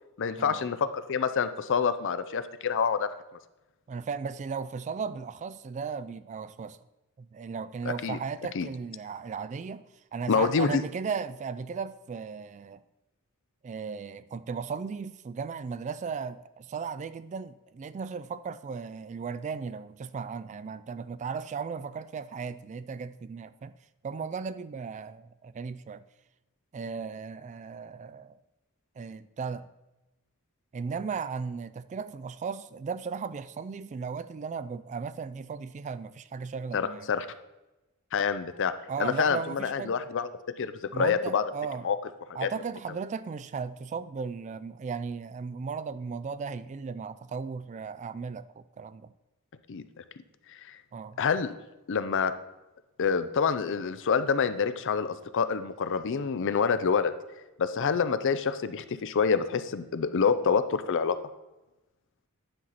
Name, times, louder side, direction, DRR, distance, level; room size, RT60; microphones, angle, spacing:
voice 1, 0.2-3.1 8.0-8.2 8.5-8.7 10.3-10.8 36.7-37.3 38.1-38.7 39.0-40.3 40.6-41.4 41.8-42.0 42.4-42.5 49.7-50.0 50.6-50.8 51.2-51.5 51.9-52.3 53.0-57.1 57.6-61.2, left 6 dB, 60° left, 0.5 m, -27 dB
voice 2, 3.9-6.8 7.2-9.8 10.1-12.8 13.6-23.7 24.0-26.0 26.7-28.4 29.0-29.7 30.7-37.1 38.9-40.0 40.9-41.9 42.3-49.1 50.9-51.2, right 5 dB, 35° right, 0.3 m, -36 dB
10.0 x 5.8 x 4.0 m
head